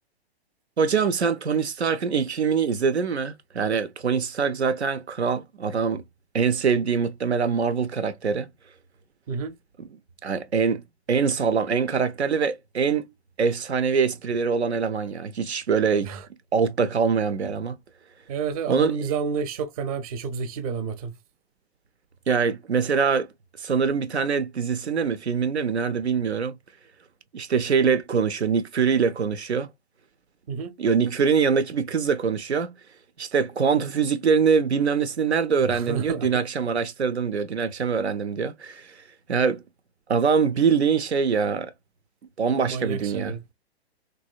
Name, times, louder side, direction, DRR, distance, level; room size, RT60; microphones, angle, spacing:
voice 1, 0.8-6.0 6.3-8.5 9.8-9.9 10.2-13.0 13.4-16.1 16.5-17.8 18.7-19.1 22.3-23.3 23.6-26.5 27.3-29.7 30.8-32.7 33.2-38.9 39.3-39.6 40.1-41.7 42.4-43.3, right 6 dB, 85° right, 0.5 m, -24 dB
voice 2, 18.3-21.1 30.5-30.7 35.7-36.3 42.7-43.4, right 6 dB, 35° right, 0.5 m, -30 dB
3.1 x 2.6 x 2.3 m
figure-of-eight pair, 115°, 32 cm